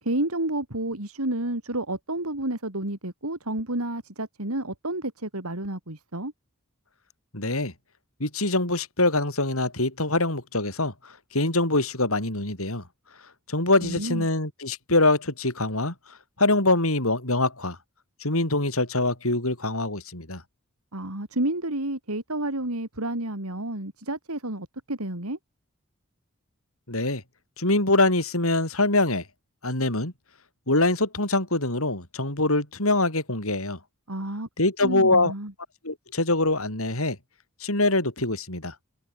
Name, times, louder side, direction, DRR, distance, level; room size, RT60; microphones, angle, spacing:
voice 1, 0.0-6.3 13.8-14.3 20.9-25.4 34.1-34.5 34.8-35.5, right 1 dB, 90° right, 4.3 m, -30 dB
voice 2, 7.3-7.7 8.2-12.8 13.5-15.9 16.4-17.8 18.2-20.4 26.9-27.2 27.6-29.2 29.6-30.1 30.7-33.8 34.6-35.3 35.8-37.2 37.6-38.7, left 2 dB, 80° left, 7.0 m, -24 dB
head